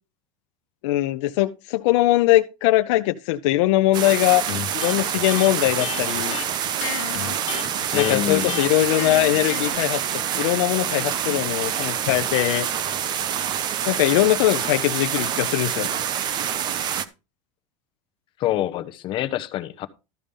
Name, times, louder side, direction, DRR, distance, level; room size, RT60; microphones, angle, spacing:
voice 1, 0.8-4.5 4.7-6.4 7.9-10.0 10.4-12.7 13.9-15.9, left 16 dB, 60° left, 0.6 m, -21 dB
sound 1, 3.9-17.1, right 9 dB, 25° right, 0.7 m, -26 dB
Electric guitar, 4.5-9.8, left 14 dB, 85° left, 1.1 m, -33 dB
voice 2, 7.9-8.6 18.4-19.9, left 13 dB, 30° left, 0.9 m, -26 dB
13.0 x 5.1 x 5.4 m
supercardioid pair, 175°, 17 cm